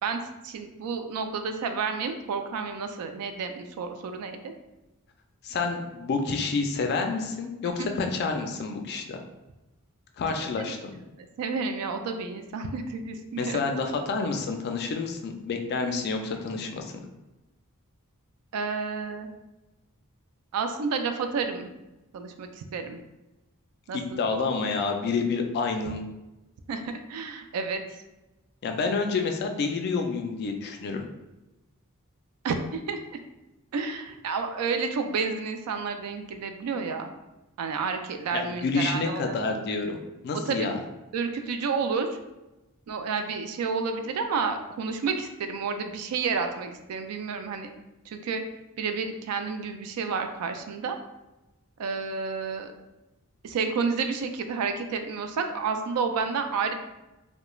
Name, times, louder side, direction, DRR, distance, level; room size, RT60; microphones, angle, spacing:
voice 1, 0.0-4.5 7.8-7.9 10.6-10.7 11.4-13.6 18.5-19.3 20.5-21.7 22.1-23.0 23.9-24.2 26.7-27.8 32.4-33.0 33.7-37.1 37.6-39.4 40.5-40.7 41.1-42.1 42.9-47.7 48.1-48.4 48.8-51.0 51.8-52.7 53.4-56.7, right 5 dB, 80° right, 6 dB, 0.3 m, -30 dB
voice 2, 5.4-9.2 10.2-10.9 13.4-16.9 24.2-26.0 28.6-31.0 38.3-40.0 40.2-40.8, left 4 dB, 45° left, 4 dB, 0.3 m, -28 dB
2.3 x 2.1 x 3.0 m, 1.0 s
head